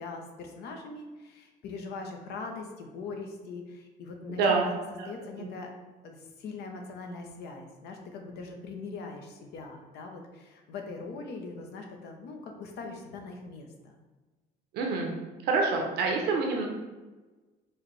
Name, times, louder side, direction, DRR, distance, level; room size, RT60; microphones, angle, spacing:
voice 1, 0.0-4.7 5.1-5.7 6.0-13.9, left 3 dB, 75° left, 3 dB, 0.8 m, -41 dB
voice 2, 14.7-15.1 15.4-16.7, right 4 dB, 80° right, 1 dB, 0.7 m, -26 dB
4.7 x 3.1 x 3.1 m, 1.2 s
cardioid pair, 110°, 17 cm